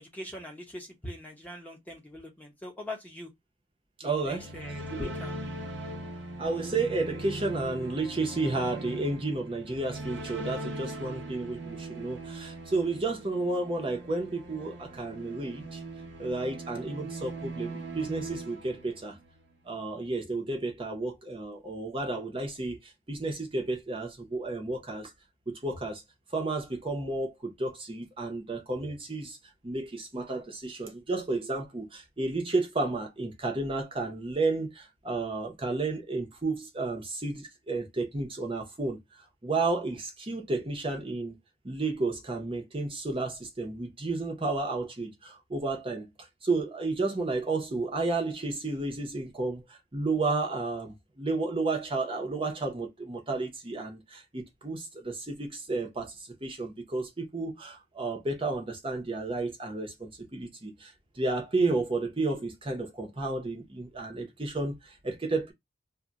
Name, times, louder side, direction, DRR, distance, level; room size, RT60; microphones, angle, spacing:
voice 1, 0.0-3.3 4.0-5.3, left 1 dB, 10° left, 0.7 m, -42 dB
voice 2, 4.0-4.5 4.9-5.1 6.4-15.8 16.2-19.2 19.6-25.1 25.5-26.0 26.3-29.4 29.6-39.0 39.4-41.4 41.6-65.5, right 3 dB, 25° right, 0.7 m, -32 dB
sound 1, 4.2-19.4, right 2 dB, 60° right, 0.7 m, -40 dB
2.3 x 2.2 x 3.8 m
head